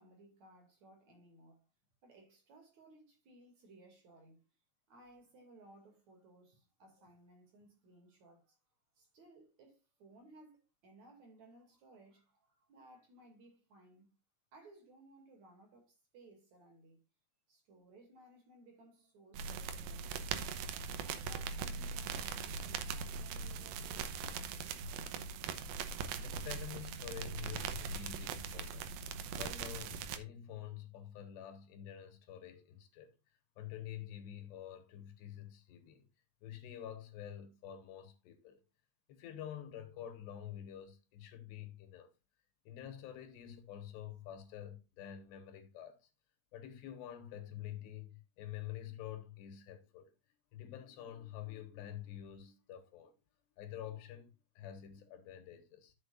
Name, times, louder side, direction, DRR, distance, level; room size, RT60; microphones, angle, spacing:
voice 1, 0.0-1.7 2.0-4.4 4.9-8.6 9.0-14.1 14.5-17.0 17.5-20.3 20.9-24.4, right 2 dB, 45° right, 3.4 m, -61 dB
sound 1, 19.3-30.2, right 5 dB, 75° right, 2.4 m, -41 dB
voice 2, 26.0-28.9 29.4-33.1 33.6-36.1 36.4-38.6 39.1-42.1 42.7-46.1 46.5-50.1 50.5-53.1 53.6-55.9, left 10 dB, 80° left, 3.5 m, -48 dB
11.5 x 7.5 x 2.5 m
omnidirectional pair, 4.9 m